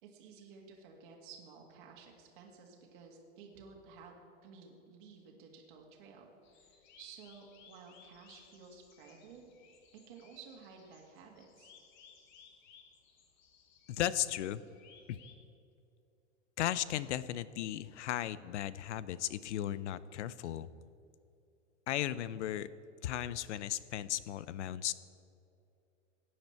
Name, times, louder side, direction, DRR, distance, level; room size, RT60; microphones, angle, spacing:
voice 1, 0.0-4.2 4.4-9.4 10.1-11.7, right 5 dB, 40° right, 0 dB, 1.9 m, -54 dB
sound 1, 6.4-15.3, left 7 dB, 40° left, 1.2 m, -62 dB
voice 2, 13.9-14.6 15.1-15.2 16.6-20.7 21.9-22.7 23.0-24.9, left 12 dB, 65° left, 17 dB, 0.6 m, -36 dB
15.0 x 9.7 x 4.5 m, 2.6 s
supercardioid pair, 175°, 38 cm